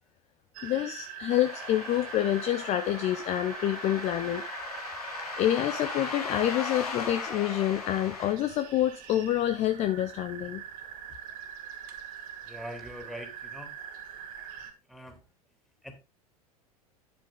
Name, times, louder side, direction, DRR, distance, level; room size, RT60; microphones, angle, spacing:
sound 1, 0.5-14.7, right 8 dB, 45° right, 1.9 m, -44 dB
voice 1, 0.6-4.4 5.4-10.6, left 12 dB, 35° left, 0.7 m, -27 dB
sound 2, 1.3-8.3, left 4 dB, 75° left, 2.8 m, -38 dB
voice 2, 12.5-13.7 14.9-15.2 15.8-15.9, equal, ahead, 3.0 m, -42 dB
9.9 x 7.7 x 3.9 m
figure-of-eight pair, 80°, 20 cm